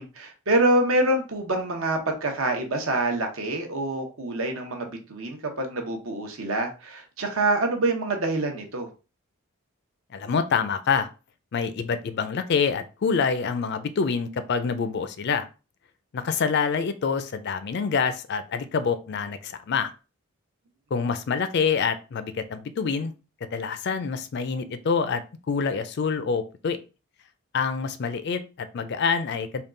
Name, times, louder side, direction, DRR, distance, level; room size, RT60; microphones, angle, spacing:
voice 1, 0.0-8.9, right 2 dB, 65° right, 0.9 m, -26 dB
voice 2, 10.1-11.1 11.5-15.5 16.1-19.9 20.9-23.1 23.5-26.8 27.5-29.6, left 5 dB, 50° left, 0.4 m, -26 dB
3.6 x 2.3 x 3.7 m
head